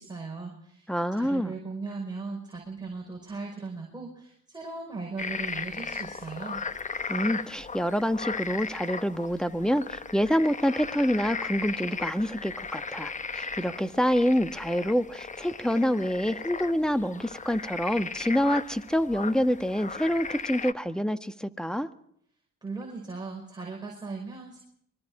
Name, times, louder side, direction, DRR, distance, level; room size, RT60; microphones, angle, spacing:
voice 1, 0.0-6.6 22.6-24.6, right 4 dB, 15° right, -1 dB, 5.3 m, -38 dB
voice 2, 0.9-1.5 7.1-21.9, equal, ahead, 10 dB, 1.3 m, -27 dB
sound 1, 5.2-20.7, left 5 dB, 25° left, 0.9 m, -37 dB
25.0 x 22.0 x 4.9 m, 0.68 s
cardioid pair, 90°, 30 cm